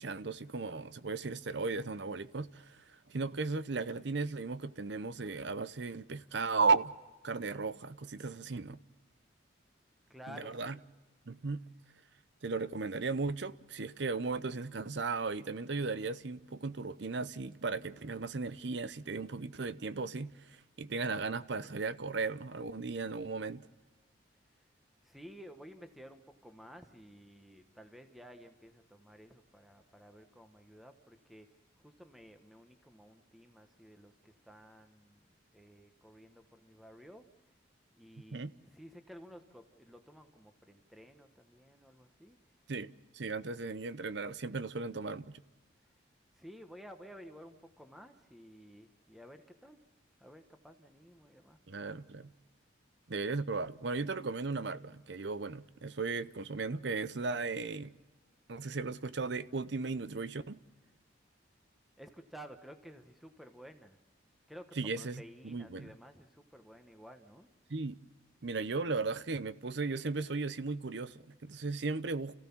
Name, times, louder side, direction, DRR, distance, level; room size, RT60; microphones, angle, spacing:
voice 1, 0.0-6.9 7.2-8.8 10.3-10.8 11.3-11.6 12.4-23.7 38.3-38.5 42.7-45.4 51.7-52.3 53.1-57.9 58.5-60.6 64.8-65.9 67.7-68.0 68.4-72.3, right 4 dB, 60° right, 0.7 m, -36 dB
voice 2, 10.1-10.9 24.6-24.7 25.0-31.5 31.8-37.3 37.9-42.4 46.3-49.8 50.2-51.6 62.0-64.0 64.5-67.5, equal, ahead, 1.1 m, -54 dB
29.5 x 15.5 x 7.2 m
head